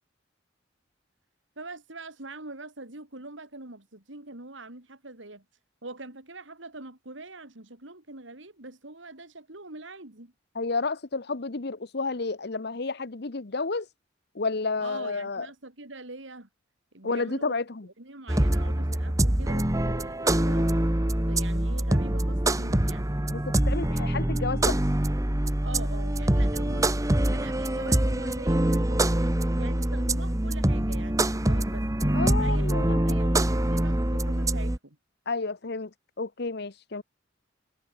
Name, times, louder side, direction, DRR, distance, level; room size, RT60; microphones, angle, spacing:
voice 1, 1.6-5.4 5.8-10.3 14.8-16.5 16.9-17.6 18.0-23.1 25.6-26.9 27.3-31.9 32.4-35.0, right 2 dB, 75° right, 3.5 m, -43 dB
voice 2, 10.5-13.9 14.3-15.5 17.0-17.9 23.3-24.8 32.1-33.4 35.3-35.9 36.2-37.0, left 3 dB, 60° left, 1.0 m, -31 dB
sound 1, 18.3-34.8, right 1 dB, 15° right, 1.3 m, -25 dB
head